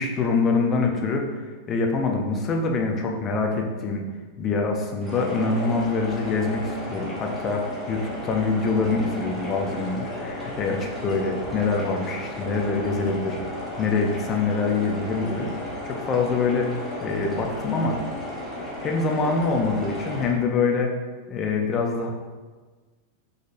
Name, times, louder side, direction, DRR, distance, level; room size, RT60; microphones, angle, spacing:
voice 1, 0.0-4.0 4.4-13.4 13.8-15.5 15.8-16.7 17.0-18.0 18.8-20.9 21.3-22.1, left 4 dB, 30° left, 2 dB, 0.7 m, -25 dB
sound 1, 5.0-20.3, left 1 dB, 10° left, 1.5 m, -34 dB
5.3 x 3.8 x 2.6 m, 1.4 s
figure-of-eight pair, 90°, 0 cm